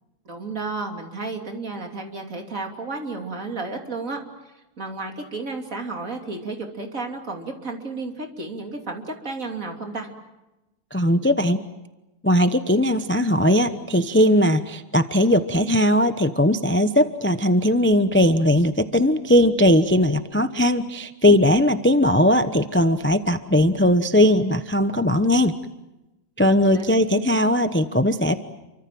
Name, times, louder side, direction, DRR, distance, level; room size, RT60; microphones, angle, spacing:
voice 1, 0.3-4.2 4.8-10.1 26.7-26.8, right 3 dB, 55° right, 3 dB, 3.4 m, -32 dB
voice 2, 10.9-11.6 12.2-25.6 26.4-28.3, left 1 dB, 10° left, 10 dB, 0.6 m, -19 dB
29.0 x 24.5 x 7.7 m, 1.0 s
omnidirectional pair, 1.7 m